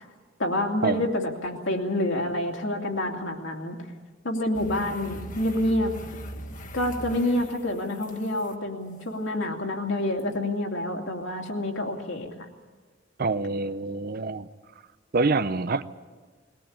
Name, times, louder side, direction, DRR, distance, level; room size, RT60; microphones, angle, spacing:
voice 1, 0.4-3.8 4.2-5.9 6.7-12.3, left 1 dB, 70° left, 1 dB, 2.6 m, -28 dB
sound 1, 4.5-8.5 10.2-10.3, equal, 45° left, 1.3 m, -40 dB
voice 2, 13.2-14.5 15.1-15.8, right 3 dB, 50° right, 13 dB, 0.7 m, -26 dB
20.5 x 18.5 x 8.7 m, 1.4 s
head